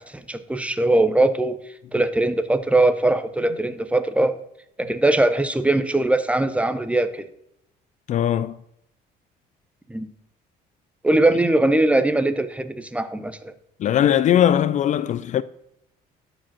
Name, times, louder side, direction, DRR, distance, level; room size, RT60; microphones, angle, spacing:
voice 1, 0.0-1.6 1.9-4.3 4.8-7.2 9.9-10.1 11.0-13.5, right 2 dB, 5° right, 0.7 m, -21 dB
voice 2, 8.1-8.6 13.8-15.4, left 10 dB, 45° left, 0.4 m, -19 dB
12.0 x 5.0 x 6.0 m
cardioid pair, 110°, 17 cm